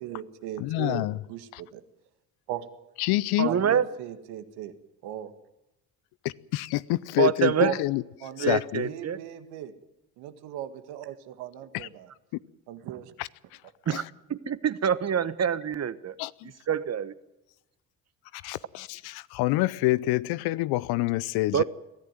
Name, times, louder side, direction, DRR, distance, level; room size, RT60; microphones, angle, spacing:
voice 1, 0.0-1.8 2.5-2.7 3.5-4.7 5.0-5.3 7.6-7.8 8.2-9.7 10.2-12.1 12.7-13.1, right 11 dB, 75° right, 1.9 m, -37 dB
voice 2, 0.6-1.2 1.5-1.6 3.0-3.5 6.2-8.0 8.4-8.9 11.7-11.9 13.2-13.3 13.9-14.1 16.2-16.5 18.3-21.6, left 18 dB, 70° left, 0.8 m, -27 dB
voice 3, 3.4-3.8 7.2-7.7 8.4-9.2 13.9-14.0 14.3-16.1 16.7-17.1 21.5-21.6, right 8 dB, 40° right, 1.3 m, -25 dB
22.5 x 14.5 x 9.2 m
hypercardioid pair, 55°, 40 cm